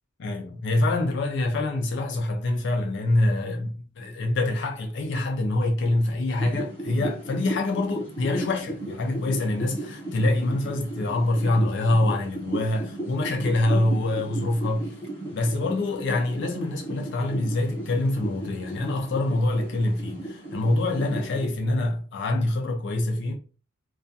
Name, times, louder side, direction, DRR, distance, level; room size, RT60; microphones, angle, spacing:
voice 1, 0.2-15.0 15.3-23.4, left 2 dB, 55° left, 0.4 m, -25 dB
sound 1, 6.4-21.5, right 1 dB, 10° left, 0.8 m, -35 dB
2.3 x 2.3 x 2.6 m
head